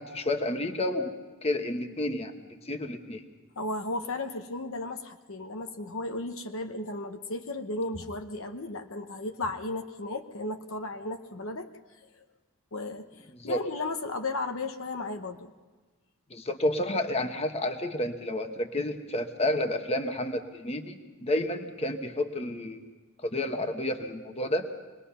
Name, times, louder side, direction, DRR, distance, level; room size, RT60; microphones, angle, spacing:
voice 1, 0.0-3.2 13.4-13.6 16.3-22.8 23.2-24.7, left 1 dB, 25° left, 6 dB, 1.2 m, -30 dB
voice 2, 3.6-11.7 12.1-12.2 12.7-15.5, left 2 dB, 60° left, 6 dB, 1.0 m, -35 dB
25.0 x 20.5 x 5.7 m, 1.3 s
head